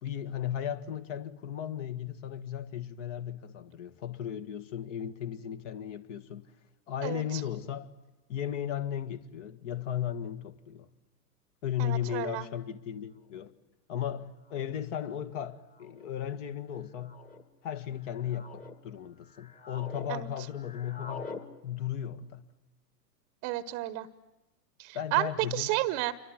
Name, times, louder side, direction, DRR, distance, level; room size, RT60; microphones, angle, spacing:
voice 1, 0.0-6.5 6.9-7.9 8.3-10.9 11.6-13.5 13.9-17.2 17.6-21.4 21.6-22.5 24.9-25.7, left 10 dB, 45° left, 1.9 m, -36 dB
voice 2, 7.0-7.4 11.8-12.5 20.1-20.3 23.4-24.1 24.8-26.1, right 17 dB, 30° right, 1.0 m, -31 dB
sound 1, 13.4-13.5 14.5-14.8 15.7-16.1 17.0-17.4 18.0-18.8 19.2-20.1 20.4-21.4, left 4 dB, 15° left, 1.8 m, -45 dB
28.0 x 24.5 x 7.7 m
hypercardioid pair, 120°, 50 cm